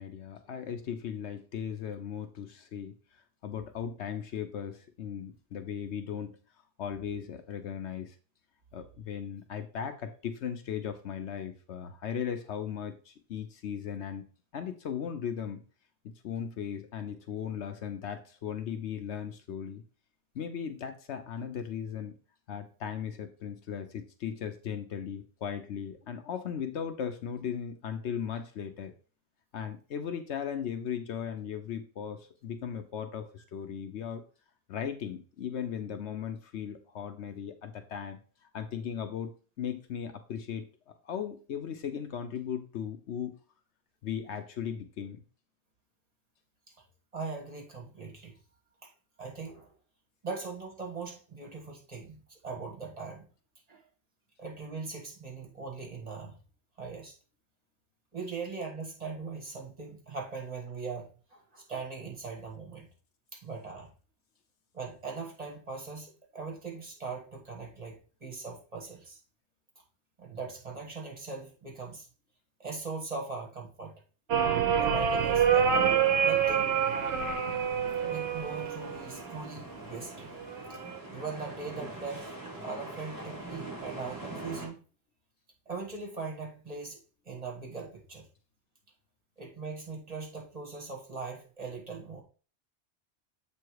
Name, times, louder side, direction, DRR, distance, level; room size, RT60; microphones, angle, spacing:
voice 1, 0.0-2.9 3.4-6.4 6.8-8.1 8.7-14.2 14.5-15.6 16.0-19.8 20.3-22.1 22.5-28.9 29.5-34.2 34.7-38.2 38.5-43.4 44.0-45.2, left 8 dB, 80° left, 8 dB, 1.1 m, -37 dB
voice 2, 47.1-48.4 48.8-48.9 49.2-49.7 50.2-53.2 53.7-53.8 54.4-56.4 56.8-57.1 58.1-62.9 63.3-63.9 64.7-69.2 70.2-72.1 72.6-74.0 74.7-75.7 76.2-76.8 78.0-80.3 80.7-80.8 81.1-82.3 82.6-84.8 85.6-87.0 87.2-88.3 89.4-92.2, right 4 dB, 35° right, 1 dB, 1.6 m, -40 dB
sound 1, 74.3-79.3 80.5-81.0, right 7 dB, 65° right, 0.9 m, -26 dB
sound 2, 75.0-84.7, right 2 dB, 20° right, 2.0 m, -44 dB
7.7 x 3.3 x 4.7 m, 0.37 s
omnidirectional pair, 1.1 m